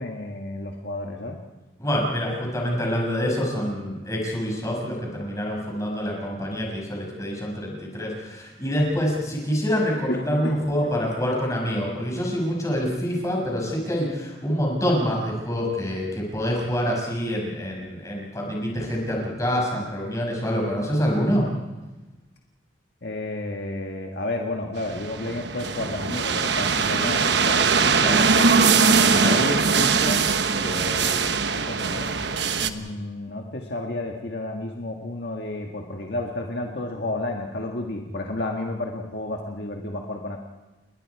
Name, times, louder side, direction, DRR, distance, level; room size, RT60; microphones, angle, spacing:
voice 1, 0.0-1.4 10.1-10.9 23.0-28.6 29.0-32.1 32.6-40.4, left 2 dB, 55° left, 1 dB, 1.7 m, -32 dB
voice 2, 1.8-21.5 28.0-28.2 29.2-29.4 32.8-32.9, equal, 15° left, -1 dB, 6.4 m, -26 dB
sound 1, 24.8-32.7, right 5 dB, 60° right, 1.1 m, -21 dB
29.5 x 21.0 x 4.8 m, 1.1 s
head